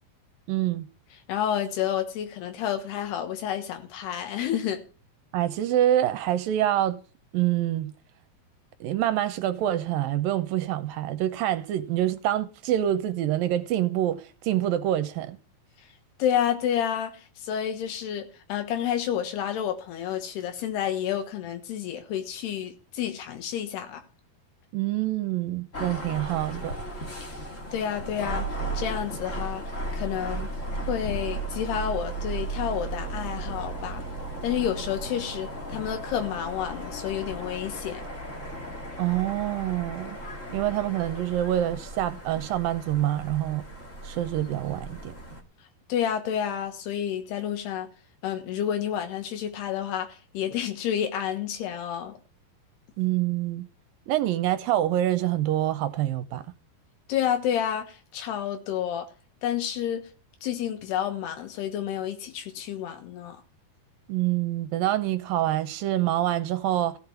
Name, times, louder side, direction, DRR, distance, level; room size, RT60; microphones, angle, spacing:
voice 1, 0.5-0.9 5.3-7.0 7.3-7.9 8.8-15.4 24.7-26.7 39.0-40.2 40.5-43.6 44.0-45.1 53.0-53.7 54.1-56.5 64.1-67.0, right 13 dB, 75° right, 2.2 m, -26 dB
voice 2, 1.3-4.8 16.2-17.1 17.4-24.0 27.7-28.5 28.7-29.6 29.9-30.5 30.9-34.0 34.4-38.0 45.9-47.9 48.2-52.1 57.1-59.1 59.4-60.0 60.4-63.4, left 9 dB, 85° left, 3.4 m, -29 dB
sound 1, 25.7-45.4, right 2 dB, 30° left, 1.5 m, -35 dB
15.0 x 6.6 x 7.1 m
omnidirectional pair, 4.7 m